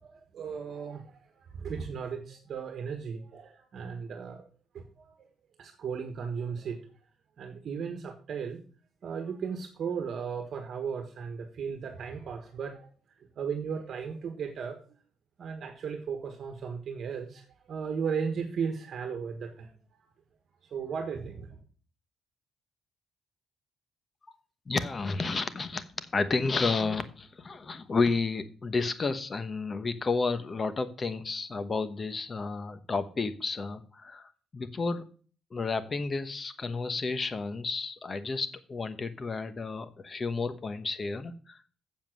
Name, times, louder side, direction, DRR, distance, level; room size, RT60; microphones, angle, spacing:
voice 1, 0.0-4.4 4.7-5.3 5.6-6.8 7.4-8.6 9.0-12.9 13.4-14.8 15.4-19.7 20.7-21.6, right 6 dB, 60° right, 5 dB, 1.4 m, -36 dB
voice 2, 24.7-35.0 35.5-41.6, left 4 dB, 35° left, 12 dB, 1.0 m, -31 dB
7.5 x 7.2 x 6.1 m, 0.42 s
cardioid pair, 90°, 0 cm